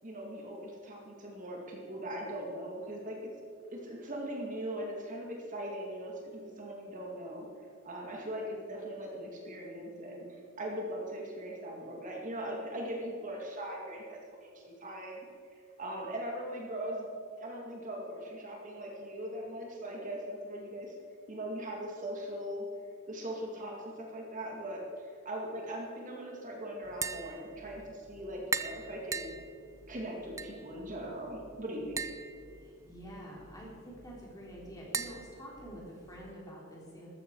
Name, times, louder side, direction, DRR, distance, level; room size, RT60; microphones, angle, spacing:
voice 1, 0.0-3.3 3.7-7.5 7.8-15.3 15.5-17.1 17.4-20.9 21.3-22.7 23.1-29.4 29.9-32.1, right 1 dB, 40° right, -1 dB, 2.1 m, -40 dB
Tap, 26.8-36.3, right 5 dB, 15° right, 0.4 m, -42 dB
voice 2, 32.6-37.1, equal, 20° left, -4 dB, 3.4 m, -47 dB
13.5 x 13.5 x 4.7 m, 2.3 s
head